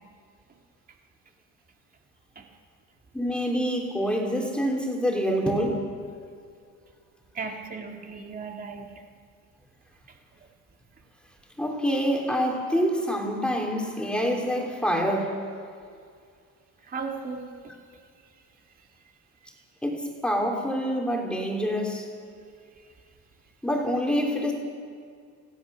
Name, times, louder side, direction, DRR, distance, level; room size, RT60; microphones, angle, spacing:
voice 1, 3.1-5.8 11.6-15.4 19.8-22.0 23.6-24.5, equal, 5° left, 0 dB, 3.4 m, -26 dB
voice 2, 7.3-8.9 10.1-10.5 16.8-17.8, right 4 dB, 25° right, 2 dB, 2.5 m, -36 dB
28.0 x 16.5 x 6.4 m, 2.2 s
cardioid pair, 155°, 32 cm